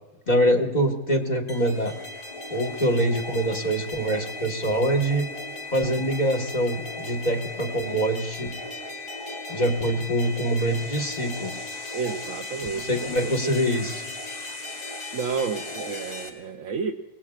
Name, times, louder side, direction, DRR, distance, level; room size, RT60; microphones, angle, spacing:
voice 1, 0.3-1.9 2.5-5.3 5.7-8.5 9.5-11.5 12.7-14.0, right 1 dB, 35° left, 1 dB, 1.6 m, -24 dB
sound 1, 1.5-16.3, left 2 dB, 55° left, 2.5 m, -36 dB
voice 2, 11.9-13.3 15.1-16.9, right 5 dB, 70° right, 3 dB, 1.1 m, -31 dB
24.0 x 19.0 x 2.4 m, 1.2 s
omnidirectional pair, 1.4 m